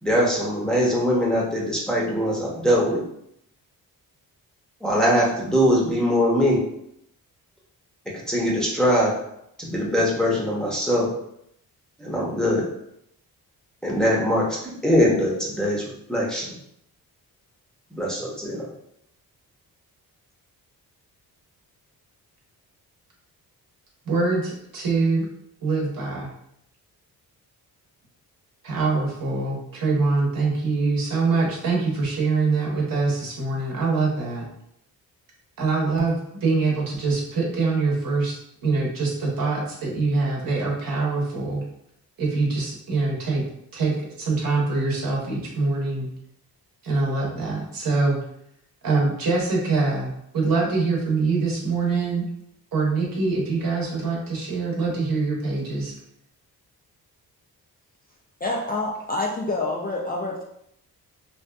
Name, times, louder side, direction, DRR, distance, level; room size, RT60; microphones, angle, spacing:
voice 1, 0.0-3.0 4.8-6.6 8.3-9.1 9.6-11.1 12.0-12.7 13.8-14.5 14.8-15.8 16.1-16.5 17.9-18.7, equal, ahead, -5 dB, 0.7 m, -22 dB
voice 2, 24.1-25.3 25.6-26.3 28.6-34.4 35.6-41.6 42.2-43.4 43.7-46.1 46.8-48.2 48.8-52.3 52.7-55.9, right 3 dB, 65° right, -3 dB, 0.9 m, -24 dB
voice 3, 58.4-60.4, left 2 dB, 25° left, -2 dB, 0.3 m, -27 dB
2.7 x 2.2 x 2.2 m, 0.75 s
cardioid pair, 80°, 37 cm